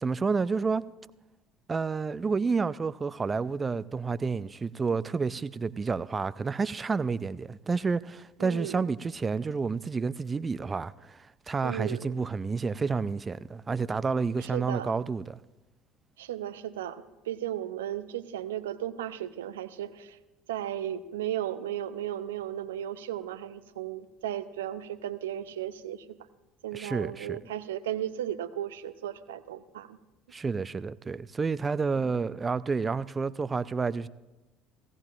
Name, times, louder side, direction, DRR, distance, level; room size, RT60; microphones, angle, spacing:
voice 1, 0.0-0.8 1.7-15.4 26.7-27.4 30.3-34.1, right 4 dB, 25° right, 0.4 m, -30 dB
voice 2, 8.4-8.9 11.6-12.1 14.4-14.9 16.2-20.2 20.5-26.2 26.6-30.0, right 11 dB, 80° right, 0.5 m, -35 dB
17.0 x 16.0 x 2.5 m
hypercardioid pair, 65°, 0 cm